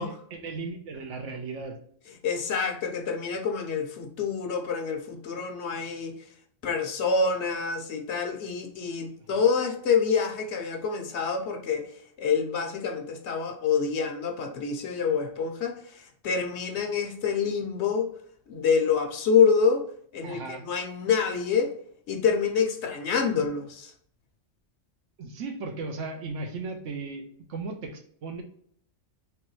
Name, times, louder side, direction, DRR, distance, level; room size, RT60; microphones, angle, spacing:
voice 1, 0.0-1.8 9.3-9.4 20.2-20.6 25.2-28.4, right 3 dB, 75° right, 1.1 m, -36 dB
voice 2, 2.2-6.2 6.6-11.9 12.2-18.1 18.5-19.8 20.1-21.7 22.1-23.9, left 6 dB, 65° left, 0.9 m, -26 dB
3.4 x 3.0 x 3.0 m
omnidirectional pair, 1.3 m